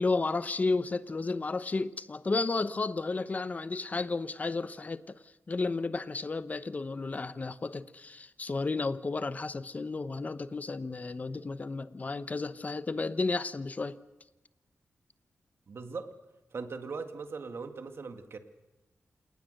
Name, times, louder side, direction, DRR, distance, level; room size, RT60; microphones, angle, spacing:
voice 1, 0.0-5.2 5.5-14.0, left 3 dB, 35° left, 0.9 m, -32 dB
voice 2, 15.7-16.1 16.5-18.4, right 4 dB, 60° right, 2.0 m, -39 dB
27.5 x 19.0 x 6.6 m
wide cardioid pair, 110°, 5 cm